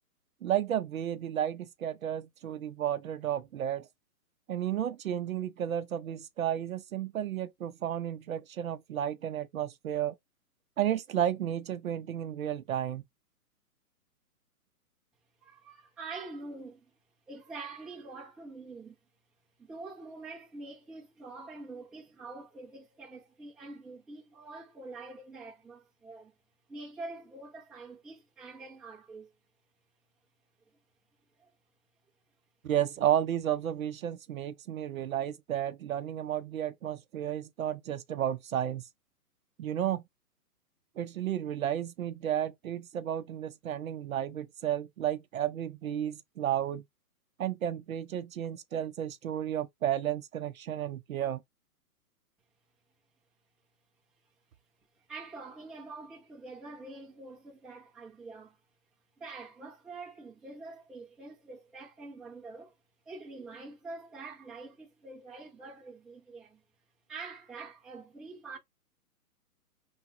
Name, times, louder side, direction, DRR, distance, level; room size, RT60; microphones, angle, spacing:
voice 1, 0.4-3.9 4.5-10.1 10.8-13.0 32.6-38.8 39.6-40.0 41.0-46.8 47.4-51.4, right 10 dB, 60° right, 0.7 m, -32 dB
voice 2, 15.4-17.0 17.3-19.0 19.6-26.3 26.7-29.3 31.3-31.5 54.9-58.6 59.2-62.7 63.0-66.6 67.1-68.6, right 3 dB, ahead, 0.7 m, -45 dB
5.8 x 2.3 x 2.6 m
hypercardioid pair, 155°, 46 cm